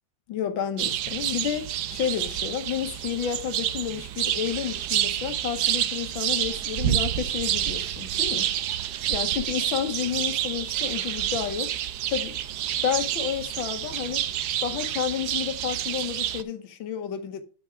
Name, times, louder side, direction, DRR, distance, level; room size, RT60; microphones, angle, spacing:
voice 1, 0.3-8.5 9.1-11.7 12.1-12.4 12.8-14.3 14.6-17.4, left 9 dB, 75° left, 1.7 m, -30 dB
sound 1, 0.8-16.4, right 11 dB, 70° right, 1.0 m, -28 dB
7.0 x 5.9 x 4.4 m
omnidirectional pair, 2.2 m